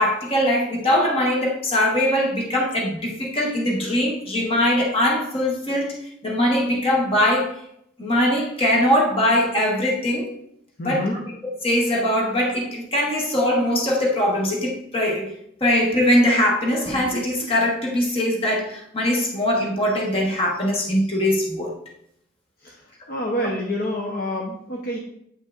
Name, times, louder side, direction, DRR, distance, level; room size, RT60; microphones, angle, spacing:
voice 1, 0.0-6.0 6.2-7.5 8.0-10.3 10.8-11.0 11.4-15.3 15.6-21.7, left 1 dB, 30° left, -1 dB, 1.1 m, -21 dB
voice 2, 10.8-11.2 22.6-22.8 23.1-25.0, left 1 dB, 50° left, -1 dB, 0.8 m, -27 dB
7.8 x 5.4 x 2.4 m, 0.72 s
head